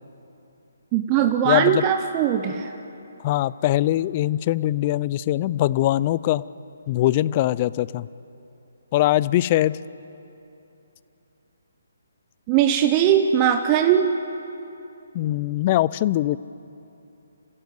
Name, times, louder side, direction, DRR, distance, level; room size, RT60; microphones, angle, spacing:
voice 1, 0.9-2.7 12.5-14.1, right 9 dB, 25° right, 5 dB, 1.0 m, -20 dB
voice 2, 1.4-1.8 3.2-6.4 6.9-8.1 8.9-9.8 15.1-16.4, left 14 dB, 30° left, 19 dB, 0.5 m, -22 dB
28.5 x 15.5 x 7.9 m, 2.8 s
figure-of-eight pair, 145°, 0 cm